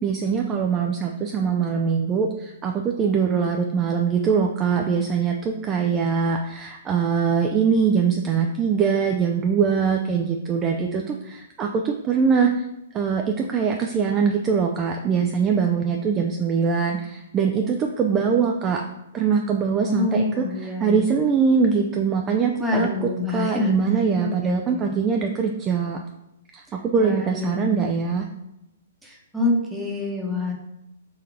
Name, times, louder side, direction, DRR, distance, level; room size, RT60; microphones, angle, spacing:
voice 1, 0.0-12.7 12.9-18.8 19.1-26.0 26.5-28.2, right 6 dB, 25° right, 2 dB, 0.3 m, -22 dB
voice 2, 19.8-21.1 22.6-23.7 24.2-24.8 27.0-27.8 29.0-30.5, left 3 dB, 5° right, -2 dB, 0.9 m, -26 dB
3.9 x 2.8 x 4.8 m, 0.89 s
hypercardioid pair, 130°, 0 cm